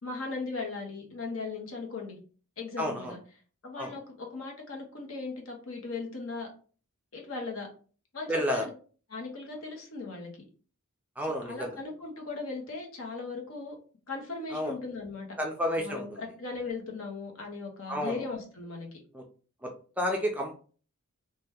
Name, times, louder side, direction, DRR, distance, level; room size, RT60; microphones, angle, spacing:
voice 1, 0.0-2.2 2.6-3.2 3.6-6.5 7.1-7.7 8.1-8.7 9.1-10.3 11.4-13.8 14.1-15.3 15.8-18.9, left 3 dB, 65° left, 1 dB, 0.9 m, -38 dB
voice 2, 2.8-3.1 3.8-3.9 8.3-8.6 11.2-11.7 14.5-14.7 15.4-16.2 17.9-18.2 19.1-19.2 20.0-20.6, equal, 5° right, 1 dB, 0.3 m, -30 dB
2.8 x 2.2 x 3.4 m, 0.40 s
head